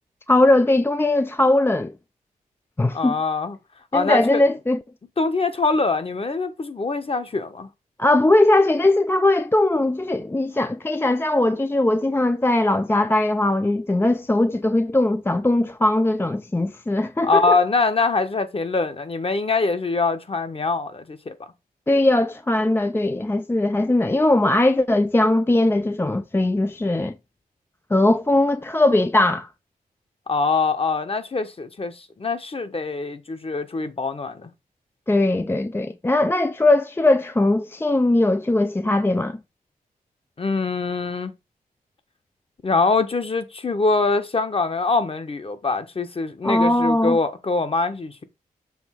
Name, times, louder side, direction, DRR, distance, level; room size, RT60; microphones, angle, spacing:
voice 1, 0.3-1.9 2.8-3.2 3.9-4.8 8.0-17.6 21.9-27.1 27.9-29.5 35.1-39.4 46.4-47.2, left 2 dB, 15° left, 0.4 m, -20 dB
voice 2, 2.9-3.6 3.9-4.4 5.2-7.7 17.2-21.3 30.3-34.5 40.4-41.3 42.6-48.2, left 3 dB, 40° left, 1.2 m, -23 dB
7.1 x 2.9 x 5.8 m
cardioid pair, 60°, 15 cm